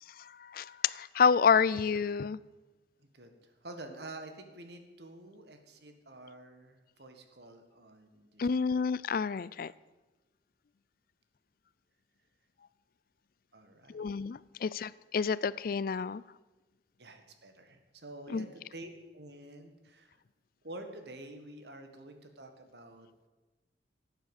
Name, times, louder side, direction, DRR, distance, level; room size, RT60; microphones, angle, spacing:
voice 1, 0.2-2.4 8.4-9.7 13.9-16.2 18.3-18.5, left 6 dB, 55° left, 20 dB, 0.4 m, -29 dB
voice 2, 3.0-8.5 13.5-14.1 17.0-20.2 20.6-23.1, right 1 dB, 70° right, 6 dB, 1.7 m, -48 dB
12.0 x 9.0 x 8.3 m, 1.2 s
head